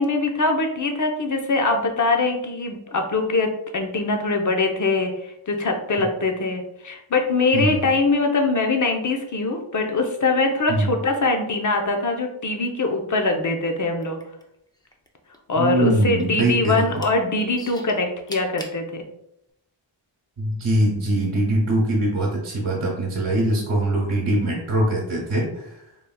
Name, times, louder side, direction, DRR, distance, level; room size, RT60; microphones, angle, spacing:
voice 1, 0.0-14.2 15.5-19.1, left 3 dB, 35° left, 3 dB, 0.8 m, -23 dB
voice 2, 7.5-7.9 10.7-10.9 15.6-17.0 20.4-25.8, right 1 dB, 85° right, -4 dB, 1.3 m, -22 dB
sound 1, 14.0-15.1 15.3-16.4 16.8-17.1 17.6-18.8 19.5-19.6, left 1 dB, 10° left, 0.5 m, -40 dB
4.1 x 3.4 x 2.3 m, 0.79 s
cardioid pair, 60°, 50 cm